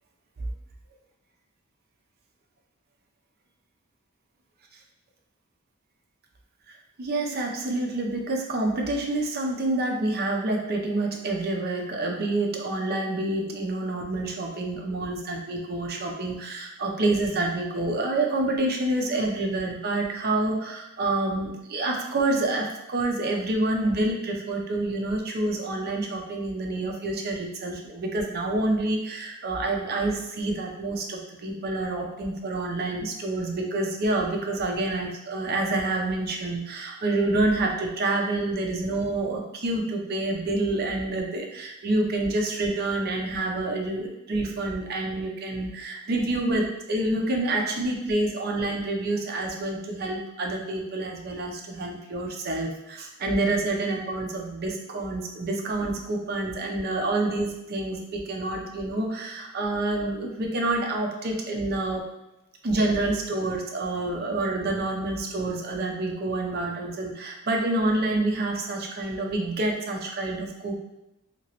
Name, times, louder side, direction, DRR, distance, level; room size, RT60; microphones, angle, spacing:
voice 1, 6.7-62.0 62.6-70.8, right 2 dB, 50° right, 1 dB, 0.5 m, -28 dB
2.9 x 2.9 x 2.9 m, 0.92 s
head